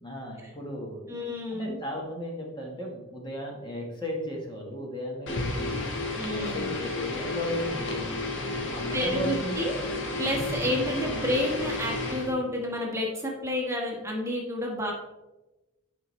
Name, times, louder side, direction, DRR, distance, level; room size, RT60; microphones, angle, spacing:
voice 1, 0.0-1.0 1.5-5.8 6.3-8.3 8.7-9.6, equal, 20° left, -1 dB, 1.2 m, -35 dB
voice 2, 1.1-1.8 6.2-6.7 8.9-9.8 10.2-14.9, left 1 dB, 15° right, -1 dB, 1.3 m, -30 dB
sound 1, 5.3-12.3, left 2 dB, 60° left, 1.2 m, -32 dB
9.9 x 5.4 x 3.1 m, 1.1 s
head